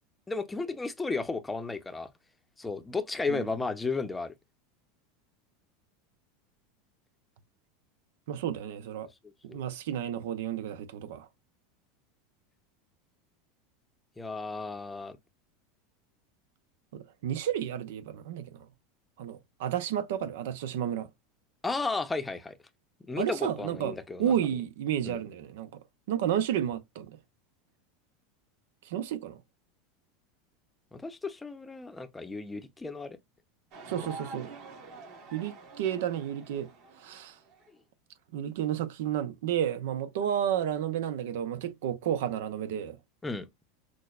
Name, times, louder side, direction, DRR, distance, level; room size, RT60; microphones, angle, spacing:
voice 1, 0.3-2.1 2.6-4.3 14.2-15.2 21.6-22.6 23.1-24.3 25.0-25.2 30.9-33.2 34.0-34.1 43.2-43.5, left 3 dB, 10° left, 0.7 m, -34 dB
voice 2, 8.3-9.1 9.4-11.3 16.9-18.5 19.2-21.1 23.2-25.7 26.1-27.1 28.9-29.4 33.9-34.5 35.3-36.7 37.0-37.3 38.3-43.0, right 10 dB, 75° right, 0.7 m, -31 dB
sound 1, 33.7-37.7, right 4 dB, 50° right, 1.8 m, -47 dB
6.2 x 2.2 x 2.4 m
supercardioid pair, 125°, 0 cm